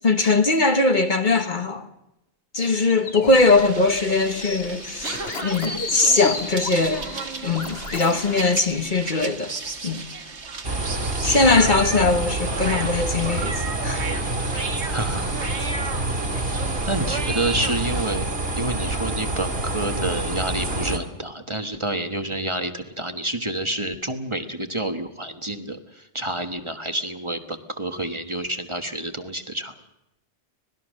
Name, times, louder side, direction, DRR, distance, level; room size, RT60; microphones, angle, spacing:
voice 1, 0.0-1.9 2.5-7.1 7.4-9.6 9.8-10.0 11.2-14.0, left 3 dB, 45° left, 1.4 m, -20 dB
sound 1, 2.6-8.6, left 4 dB, 60° left, 1.9 m, -34 dB
sound 2, 3.3-18.1, right 4 dB, 75° right, 2.0 m, -34 dB
sound 3, 10.6-21.0, right 2 dB, 60° right, 2.7 m, -27 dB
voice 2, 14.9-15.3 16.8-18.3 18.6-29.8, right 1 dB, 25° right, 1.4 m, -29 dB
25.5 x 19.0 x 6.4 m
omnidirectional pair, 1.2 m